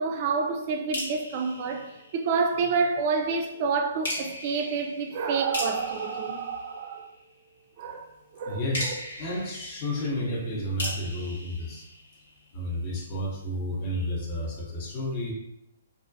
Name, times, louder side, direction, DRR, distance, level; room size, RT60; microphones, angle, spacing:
voice 1, 0.0-7.1 7.8-8.1 8.3-9.0, right 4 dB, 40° right, 0.3 m, -28 dB
sound 1, 0.9-2.7 4.0-7.4 8.7-12.6, left 1 dB, 75° left, 1.2 m, -38 dB
voice 2, 8.5-11.8 12.5-15.3, left 1 dB, 35° left, 0.7 m, -31 dB
2.3 x 2.1 x 2.6 m
hypercardioid pair, 135°, 0 cm